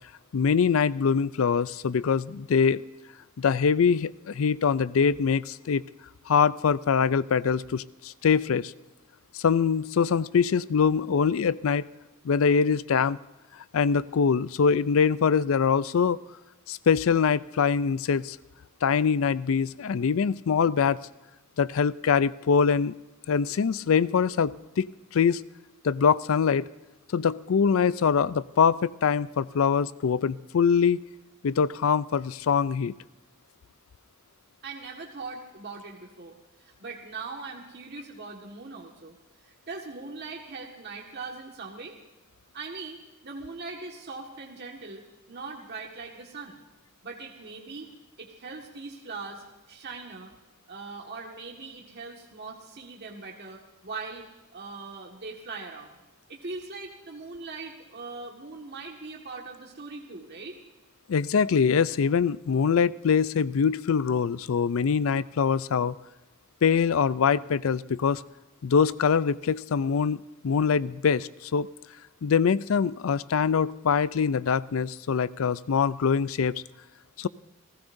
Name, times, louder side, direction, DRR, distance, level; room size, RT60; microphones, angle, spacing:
voice 1, 0.3-2.8 3.4-5.8 6.3-8.7 9.3-11.8 12.2-13.2 13.7-16.2 16.7-18.4 18.8-21.0 21.6-22.9 23.3-24.9 25.1-25.4 25.8-26.7 27.1-31.0 31.4-32.9 61.1-65.9 66.6-68.2 68.6-71.7 72.2-76.5 77.2-77.3, left 6 dB, 80° left, 18 dB, 0.4 m, -23 dB
voice 2, 34.6-39.2 39.4-41.9 42.5-45.0 45.3-46.6 47.0-47.9 48.2-50.3 50.7-54.3 54.5-55.9 56.3-60.6, right 4 dB, 55° right, -1 dB, 1.7 m, -40 dB
29.5 x 15.5 x 2.7 m, 1.1 s
head